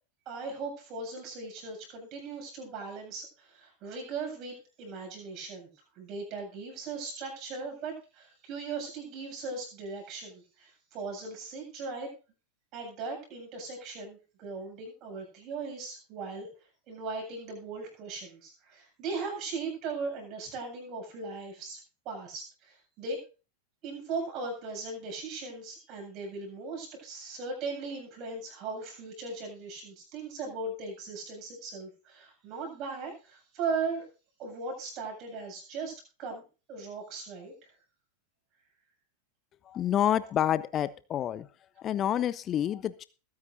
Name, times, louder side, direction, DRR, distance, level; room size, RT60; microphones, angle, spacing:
voice 1, 0.3-5.7 6.0-12.1 12.7-16.5 16.9-23.2 23.8-34.1 34.4-35.9 36.2-37.5, right 4 dB, 35° right, 2 dB, 7.9 m, -38 dB
voice 2, 39.7-41.5 41.8-43.1, left 10 dB, 30° left, 17 dB, 0.6 m, -28 dB
21.5 x 9.7 x 2.7 m, 0.34 s
figure-of-eight pair, 90°, 0 cm